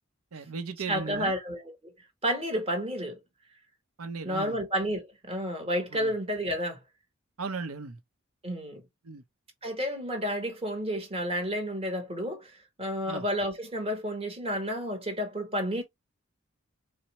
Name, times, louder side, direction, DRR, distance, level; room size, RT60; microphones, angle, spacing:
voice 1, 0.3-1.3 4.0-4.6 5.9-6.1 7.4-8.0 9.0-9.2 13.1-13.2, right 4 dB, 80° right, 0.7 m, -37 dB
voice 2, 0.9-1.9 2.2-3.2 4.2-6.8 8.4-8.8 9.6-15.8, equal, 25° right, 1.0 m, -31 dB
4.2 x 2.0 x 2.9 m
head